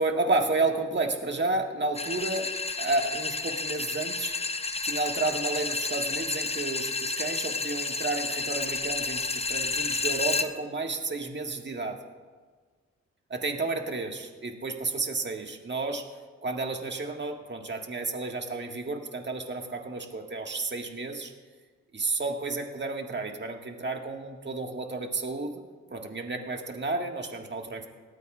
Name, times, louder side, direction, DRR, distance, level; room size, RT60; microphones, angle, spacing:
voice 1, 0.0-4.3 4.8-12.0 13.3-16.1 16.4-21.3 21.9-25.6 25.9-27.9, right 3 dB, 40° right, 3 dB, 1.7 m, -31 dB
sound 1, 1.9-10.5, left 3 dB, 20° left, 0.9 m, -31 dB
18.5 x 14.5 x 2.4 m, 1.4 s
supercardioid pair, 50°, 29 cm